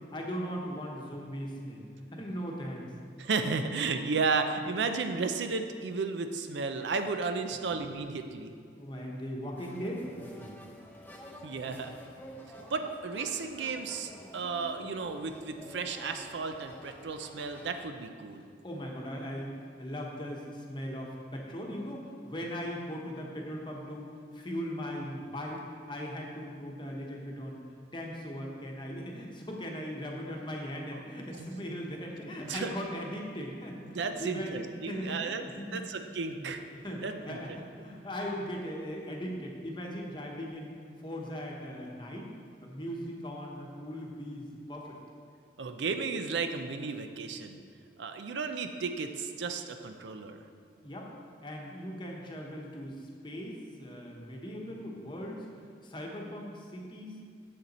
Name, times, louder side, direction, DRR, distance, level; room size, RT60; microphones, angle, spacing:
voice 1, 0.1-2.9 8.7-10.7 18.6-27.6 27.9-35.9 36.3-40.7 41.0-42.3 42.6-44.9 50.8-51.1 51.4-55.5 55.8-57.2, equal, 25° left, -1 dB, 1.0 m, -39 dB
voice 2, 3.2-8.5 11.4-11.9 12.7-18.4 32.5-32.7 33.8-35.4 35.7-36.6 37.0-37.6 45.6-47.6 48.0-50.4, right 4 dB, 75° right, 7 dB, 0.5 m, -33 dB
sound 1, 9.5-17.9, equal, 10° left, 0.6 m, -49 dB
7.6 x 6.6 x 4.2 m, 2.2 s
head